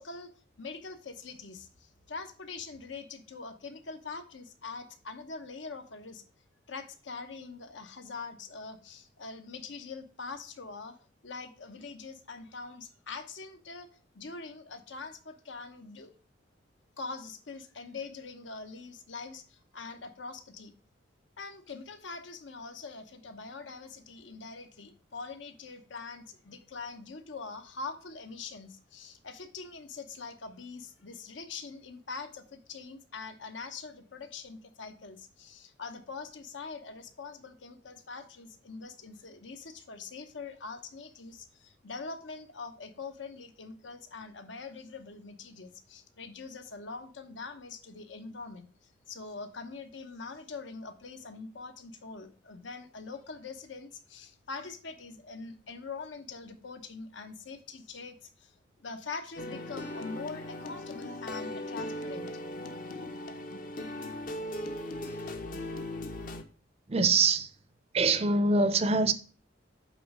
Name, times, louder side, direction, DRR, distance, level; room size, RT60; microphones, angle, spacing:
voice 1, 0.0-6.2 6.7-11.0 11.2-16.2 17.0-20.7 21.4-48.7 49.1-58.5 58.8-62.4, left 4 dB, 75° left, 0.9 m, -43 dB
sound 1, 59.4-66.4, left 1 dB, 45° left, 0.7 m, -38 dB
voice 2, 66.9-67.5 67.9-69.1, right 3 dB, 30° right, 0.5 m, -24 dB
8.4 x 3.2 x 4.8 m
head